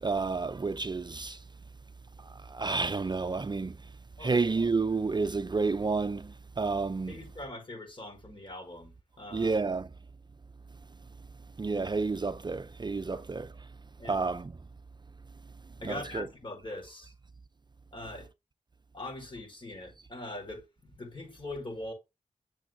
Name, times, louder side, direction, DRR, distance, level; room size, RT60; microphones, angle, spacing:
voice 1, 0.0-1.4 2.5-3.7 4.2-7.1 9.3-9.9 11.6-13.5 14.1-14.5 15.8-16.3, right 4 dB, 35° right, 0.5 m, -30 dB
voice 2, 4.2-4.5 7.1-9.7 13.1-13.2 14.0-14.3 15.8-17.1 17.9-18.3 18.9-21.9, left 1 dB, 40° left, 5.1 m, -42 dB
8.6 x 7.2 x 2.6 m
cardioid pair, 60°, 13 cm